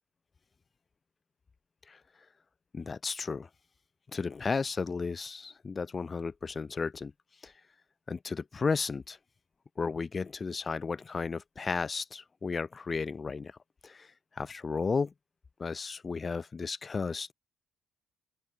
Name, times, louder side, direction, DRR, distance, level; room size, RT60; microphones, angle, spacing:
voice 1, 2.7-3.5 4.1-7.1 7.4-7.5 8.1-9.2 9.8-13.6 13.8-15.1 15.6-17.3, left 4 dB, 25° left, 0.7 m, -34 dB
open air
cardioid pair, 150°, 0 cm